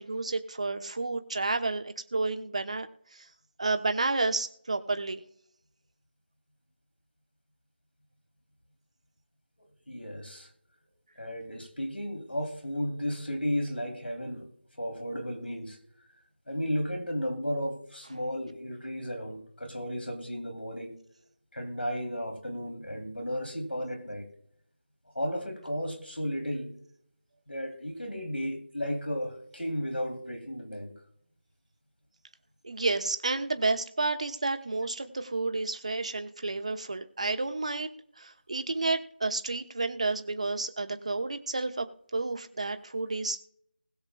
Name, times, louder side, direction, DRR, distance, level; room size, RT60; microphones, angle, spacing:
voice 1, 0.0-2.9 3.1-3.3 3.6-5.2 32.6-37.9 38.2-41.9 42.1-43.5, right 3 dB, 40° right, 1.0 m, -30 dB
voice 2, 9.9-10.5 11.2-14.5 14.8-15.8 16.5-20.9 21.5-24.2 25.1-26.8 27.5-30.9, equal, 75° left, 3.0 m, -34 dB
20.5 x 7.1 x 2.3 m
figure-of-eight pair, 165°, 6 cm